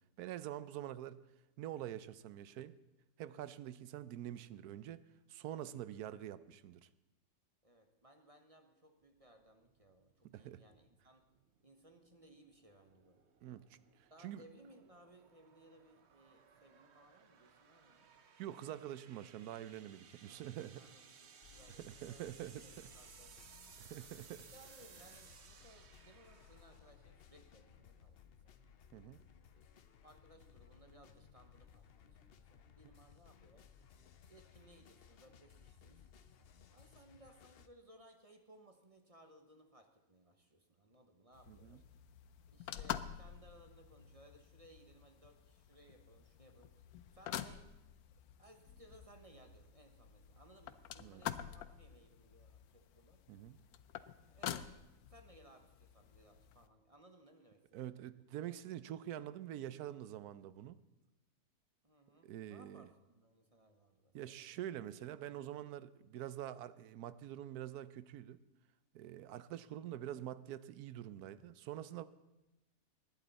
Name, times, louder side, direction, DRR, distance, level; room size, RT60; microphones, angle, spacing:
voice 1, 0.2-1.2 1.6-2.7 3.2-5.0 5.3-6.9 10.2-10.6 13.4-14.4 18.4-20.9 21.8-22.9 23.8-24.4 28.9-29.2 41.5-41.8 51.0-51.2 53.3-53.6 57.7-60.8 62.2-62.9 64.1-68.4 68.9-72.1, right 12 dB, 85° right, 15 dB, 1.1 m, -46 dB
voice 2, 7.6-11.2 11.6-13.2 14.1-18.1 20.2-22.3 22.6-23.5 24.4-28.2 28.4-28.6 29.5-29.6 30.0-33.7 34.3-36.0 36.7-41.8 42.5-47.7 48.4-53.2 54.3-58.2 58.5-58.6 61.8-64.6, right 1 dB, 25° right, 6 dB, 1.0 m, -63 dB
sound 1, 9.0-28.1, right 6 dB, 50° right, 1.1 m, -62 dB
sound 2, 21.4-37.7, left 8 dB, 55° left, 0.7 m, -62 dB
sound 3, 41.3-56.7, left 10 dB, 80° left, 1.1 m, -48 dB
19.5 x 11.0 x 4.1 m, 0.98 s
omnidirectional pair, 1.6 m